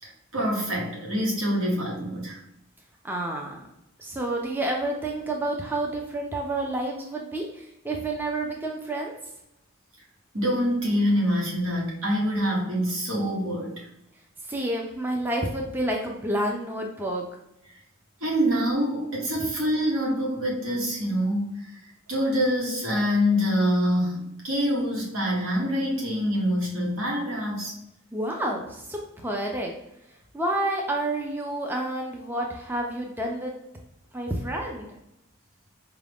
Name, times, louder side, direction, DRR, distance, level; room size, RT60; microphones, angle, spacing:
voice 1, 0.0-2.4 10.3-13.9 18.2-21.8 22.1-27.7, equal, 75° right, -2 dB, 1.2 m, -25 dB
voice 2, 3.0-3.7 4.0-9.2 14.5-17.2 28.1-29.7 30.3-33.5 34.1-34.9, right 1 dB, 10° right, 0 dB, 0.4 m, -29 dB
4.6 x 2.4 x 3.4 m, 0.85 s
head